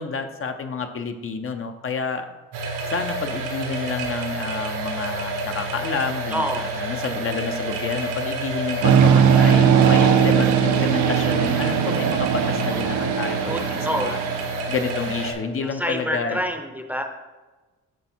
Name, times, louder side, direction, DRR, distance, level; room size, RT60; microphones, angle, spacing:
voice 1, 0.0-2.3 2.8-13.6 14.0-14.2 14.7-16.4, left 5 dB, 45° left, 6 dB, 0.7 m, -29 dB
sound 1, 2.5-15.3, right 2 dB, 85° right, 1.4 m, -29 dB
voice 2, 6.3-6.8 9.9-10.3 13.5-14.2 15.6-17.0, equal, 5° right, 5 dB, 0.7 m, -28 dB
sound 2, 8.8-14.6, right 8 dB, 65° right, 0.7 m, -19 dB
10.0 x 3.4 x 4.4 m, 1.2 s
cardioid pair, 95°, 31 cm